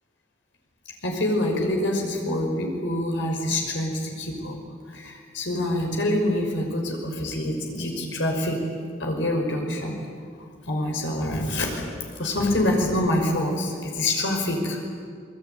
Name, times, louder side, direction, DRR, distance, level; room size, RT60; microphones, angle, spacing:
voice 1, 1.0-4.6 4.9-8.6 9.0-10.0 10.7-11.8 12.2-14.8, left 1 dB, 70° left, 2 dB, 6.0 m, -26 dB
28.0 x 21.0 x 9.5 m, 2.1 s
head